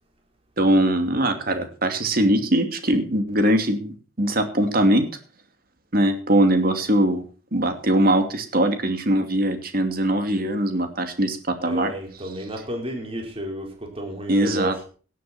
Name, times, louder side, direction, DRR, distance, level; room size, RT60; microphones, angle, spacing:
voice 1, 0.6-5.1 5.9-7.2 7.5-11.9 14.3-14.7, right 1 dB, 50° right, 7 dB, 2.7 m, -21 dB
voice 2, 11.6-14.9, equal, 30° right, 2 dB, 4.5 m, -32 dB
17.5 x 10.0 x 4.4 m, 0.38 s
head